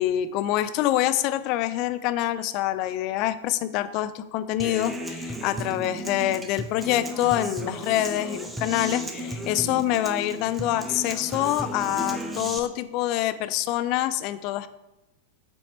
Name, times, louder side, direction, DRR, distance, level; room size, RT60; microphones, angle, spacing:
voice 1, 0.0-14.7, left 13 dB, 45° left, 12 dB, 0.3 m, -26 dB
Human voice / Acoustic guitar, 4.6-12.6, equal, 10° right, 0.7 m, -34 dB
7.3 x 4.2 x 3.3 m, 0.98 s
figure-of-eight pair, 95°, 0 cm